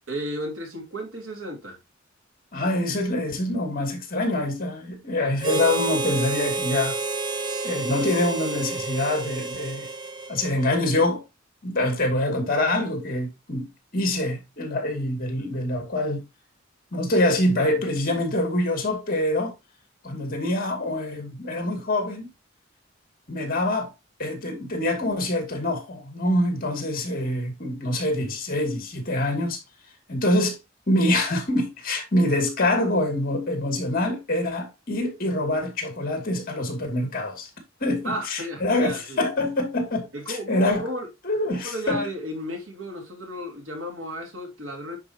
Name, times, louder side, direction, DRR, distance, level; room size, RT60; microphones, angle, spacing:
voice 1, 0.1-1.8 38.0-39.2 40.1-41.1 41.5-45.0, equal, 70° right, 3.1 m, -33 dB
voice 2, 2.5-7.0 7.6-9.9 10.3-11.2 11.6-13.7 13.9-16.2 16.9-19.5 20.0-22.3 23.3-23.9 24.2-29.6 30.1-30.6 30.9-37.5 37.8-40.8 41.2-42.0, left 1 dB, 45° left, 2.4 m, -25 dB
Harmonica, 5.4-10.9, right 3 dB, 20° right, 0.7 m, -30 dB
10.0 x 4.8 x 2.8 m
head